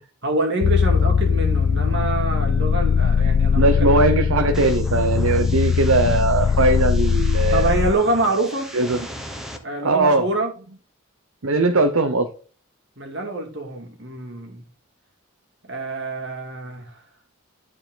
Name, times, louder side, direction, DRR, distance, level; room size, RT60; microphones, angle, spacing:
voice 1, 0.2-4.0 7.5-8.7 9.6-10.5 13.0-14.6 15.6-16.9, right 2 dB, 55° right, 3 dB, 2.4 m, -25 dB
sound 1, 0.6-7.9, left 6 dB, 60° left, 0.3 m, -20 dB
voice 2, 3.5-7.8 8.7-9.1 9.8-10.3 11.4-12.3, right 2 dB, 75° right, 7 dB, 0.9 m, -19 dB
sound 2, 4.5-9.6, equal, ahead, 1.2 m, -38 dB
11.5 x 4.7 x 3.9 m, 0.39 s
head